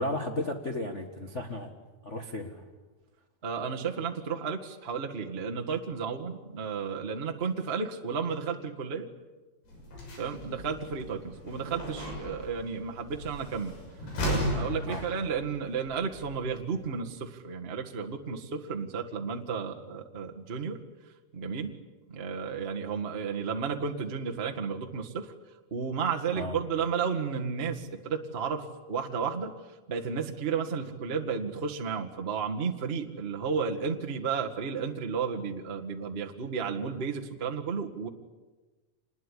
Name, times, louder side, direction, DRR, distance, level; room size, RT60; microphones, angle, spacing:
voice 1, 0.0-1.7 2.0-2.6 14.9-15.0 26.3-26.5, left 1 dB, 65° left, 2 dB, 0.7 m, -34 dB
voice 2, 3.4-9.1 10.2-13.8 14.3-20.8 21.3-21.7 22.1-25.3 25.7-29.5 29.9-38.1, right 6 dB, 65° right, 2 dB, 0.6 m, -33 dB
sound 1, 9.7-17.0, equal, 85° left, 8.6 m, -36 dB
27.0 x 20.5 x 10.0 m, 1.2 s
omnidirectional pair, 4.4 m